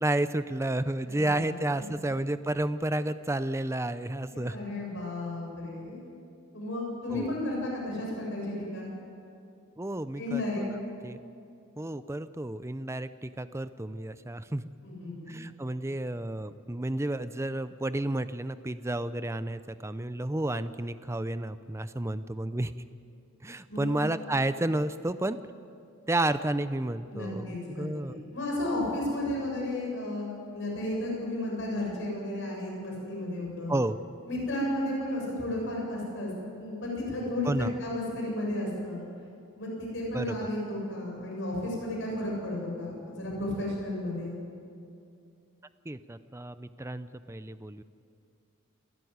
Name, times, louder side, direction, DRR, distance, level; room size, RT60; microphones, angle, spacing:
voice 1, 0.0-4.6 7.1-7.4 9.8-10.8 11.0-11.2 11.8-14.6 15.3-22.7 23.4-25.4 26.1-28.2 33.7-34.0 37.4-37.7 40.1-40.5 45.9-47.8, right 1 dB, 10° right, 13 dB, 0.5 m, -31 dB
voice 2, 1.0-1.9 4.3-6.0 6.5-8.9 10.2-10.6 14.8-15.4 23.7-24.0 27.1-33.7 34.3-36.3 36.6-39.0 39.5-44.3, left 1 dB, 55° left, -2 dB, 7.2 m, -33 dB
28.0 x 13.0 x 9.5 m, 2.5 s
head